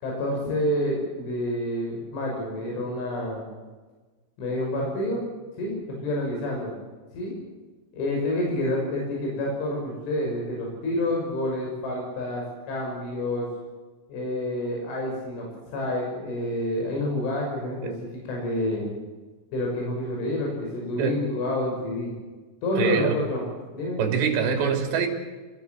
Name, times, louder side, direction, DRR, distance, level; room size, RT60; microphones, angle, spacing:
voice 1, 0.0-3.4 4.4-5.2 5.6-6.7 7.1-7.4 7.9-13.4 14.1-15.5 15.7-17.9 18.3-18.9 19.5-22.1 22.6-23.4 23.7-24.0, left 1 dB, 70° left, -1 dB, 8.5 m, -28 dB
voice 2, 22.8-23.2 24.0-25.1, right 6 dB, 60° right, 3 dB, 5.4 m, -24 dB
27.5 x 19.0 x 7.9 m, 1.3 s
omnidirectional pair, 5.7 m